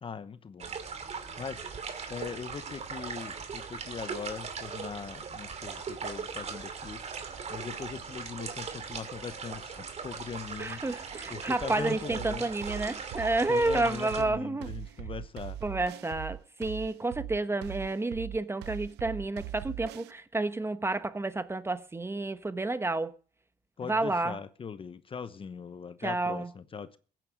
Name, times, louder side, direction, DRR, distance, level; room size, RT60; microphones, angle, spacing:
voice 1, 0.0-0.7 1.4-1.7 2.1-10.8 11.3-12.5 13.5-15.6 23.8-27.0, left 6 dB, 30° left, 1.0 m, -40 dB
sound 1, 0.6-14.2, right 6 dB, 40° right, 2.6 m, -39 dB
voice 2, 10.6-14.7 15.6-23.1 23.8-24.4 26.0-26.5, right 2 dB, 15° right, 1.0 m, -30 dB
sound 2, 12.1-20.1, right 13 dB, 80° right, 0.8 m, -41 dB
16.0 x 9.3 x 6.4 m
cardioid pair, 110°, 17 cm